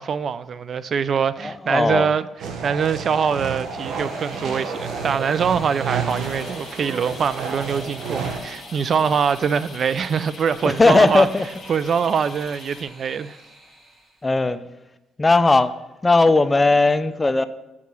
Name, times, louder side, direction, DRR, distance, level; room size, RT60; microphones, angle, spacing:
voice 1, 0.0-2.2 2.6-11.3 11.7-13.4, right 6 dB, 55° right, 0.3 m, -23 dB
voice 2, 1.4-2.1 10.6-11.5 14.2-14.6 15.2-15.8 16.0-17.4, left 3 dB, 20° left, 0.5 m, -17 dB
sound 1, 2.4-8.4, right 5 dB, 80° right, 1.0 m, -30 dB
sound 2, 3.2-14.2, right 1 dB, 25° right, 2.7 m, -44 dB
sound 3, 6.1-12.8, left 7 dB, 60° left, 0.7 m, -44 dB
7.1 x 4.8 x 6.8 m
cardioid pair, 90°, 0 cm